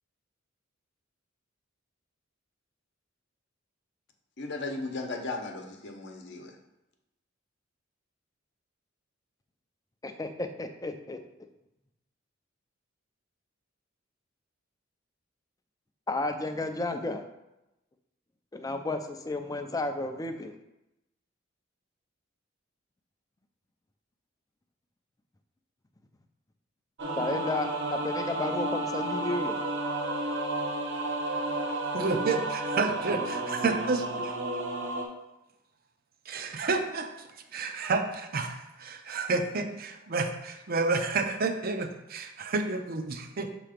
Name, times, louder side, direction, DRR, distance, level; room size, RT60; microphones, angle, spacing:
voice 1, 4.4-6.5, left 3 dB, 60° left, 3 dB, 0.8 m, -36 dB
voice 2, 10.0-11.2 16.1-17.2 18.5-20.6 27.2-29.6, left 2 dB, 20° left, 6 dB, 0.5 m, -32 dB
sound 1, 27.0-35.1, right 2 dB, 65° right, 1.0 m, -32 dB
voice 3, 31.9-34.3 36.3-37.3 37.5-43.5, right 3 dB, 50° right, 6 dB, 0.6 m, -30 dB
6.6 x 3.0 x 5.0 m, 0.92 s
head